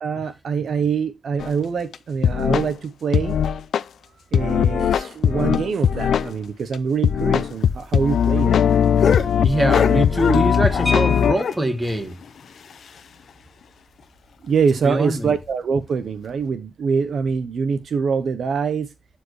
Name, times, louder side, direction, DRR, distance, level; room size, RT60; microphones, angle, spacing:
voice 1, 0.0-3.4 4.3-8.5 14.4-18.9, right 6 dB, 60° right, 0.8 m, -24 dB
sound 1, 1.4-1.5 1.9-2.0 2.2-2.7 3.1-3.8 4.3-6.3 6.7-6.8 7.0-11.3, left 8 dB, 80° left, 0.4 m, -19 dB
sound 2, 7.6-11.0 11.3-13.3 13.6-13.7 14.0-14.1 14.5-14.6 15.2-15.5 16.3-16.4, left 6 dB, 65° left, 0.9 m, -28 dB
voice 2, 9.4-12.2 14.8-15.3, right 1 dB, 15° right, 1.4 m, -23 dB
sound 3, 10.9-11.9 13.4-13.5 13.8-14.0 14.4-14.7, left 1 dB, 5° left, 1.5 m, -31 dB
11.5 x 4.5 x 3.1 m
wide cardioid pair, 180°, 0 cm